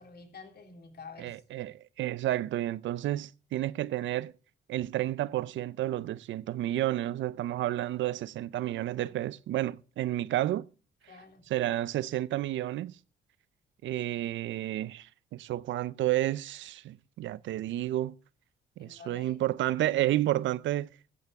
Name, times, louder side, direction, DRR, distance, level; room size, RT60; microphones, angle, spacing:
voice 1, 0.0-1.4 11.1-11.5 18.8-19.4, left 4 dB, 55° left, 2.9 m, -49 dB
voice 2, 1.2-4.3 4.7-10.7 11.5-13.0 13.8-18.1 18.8-20.9, right 14 dB, 70° right, 0.5 m, -31 dB
15.0 x 9.8 x 3.5 m
cardioid pair, 90°, 20 cm